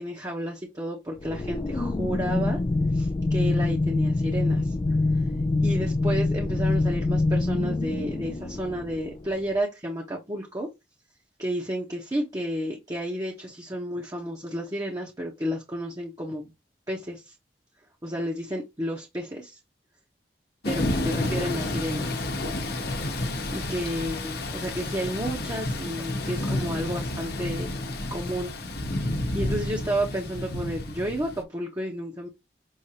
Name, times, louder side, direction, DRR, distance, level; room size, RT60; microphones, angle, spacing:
voice 1, 0.0-2.6 2.9-4.7 5.6-10.7 11.4-16.5 16.9-17.3 18.0-19.6 20.7-22.3 23.5-27.8 28.1-28.5 29.3-32.3, equal, 20° right, 0.8 m, -31 dB
sound 1, 1.2-9.4, left 2 dB, 25° left, 0.3 m, -25 dB
Thunder / Rain, 20.6-31.4, left 1 dB, 60° left, 0.9 m, -30 dB
6.4 x 2.5 x 2.8 m
head